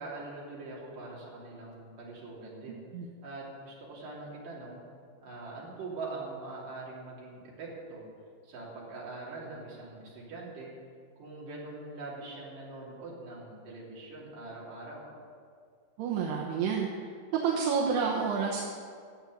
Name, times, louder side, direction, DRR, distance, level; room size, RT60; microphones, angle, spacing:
voice 1, 0.0-2.8 3.2-4.8 5.2-8.0 8.4-10.7 11.2-15.0, right 3 dB, 50° right, -5 dB, 4.3 m, -43 dB
voice 2, 2.7-3.1 16.0-16.9 17.4-18.6, right 6 dB, 70° right, -2 dB, 2.8 m, -29 dB
14.0 x 8.0 x 8.5 m, 2.1 s
omnidirectional pair, 5.5 m